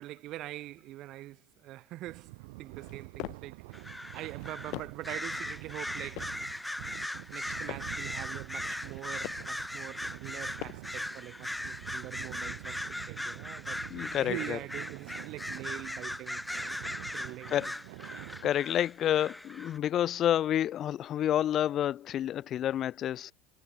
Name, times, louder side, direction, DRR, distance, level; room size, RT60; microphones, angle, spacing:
voice 1, 0.0-6.3 7.3-16.9 17.1-17.6, right 16 dB, 55° right, 0.9 m, -44 dB
sound 1, 2.1-18.5, right 27 dB, 80° right, 1.0 m, -47 dB
sound 2, 2.7-3.6 4.2-5.1 5.8-6.5 7.2-8.0 8.7-9.6 10.2-11.0, left 23 dB, 65° left, 0.8 m, -44 dB
sound 3, 3.7-4.7 5.0-19.8, left 1 dB, 5° left, 0.5 m, -39 dB
voice 2, 13.9-14.6 17.5-17.7 18.4-23.3, left 11 dB, 40° left, 1.1 m, -29 dB
supercardioid pair, 125°, 0 cm